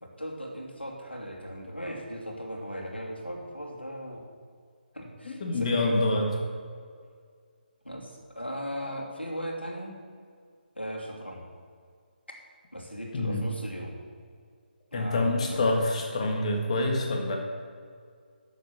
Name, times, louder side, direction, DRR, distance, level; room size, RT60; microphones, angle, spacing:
voice 1, 0.0-4.3 4.9-6.3 7.8-10.0 10.8-11.5 12.7-14.0 14.9-15.7, equal, 90° left, -1 dB, 2.8 m, -37 dB
voice 2, 5.2-6.3 13.1-13.4 14.9-17.4, left 2 dB, 40° left, 2 dB, 1.9 m, -26 dB
11.5 x 7.3 x 6.4 m, 2.1 s
figure-of-eight pair, 145°, 6 cm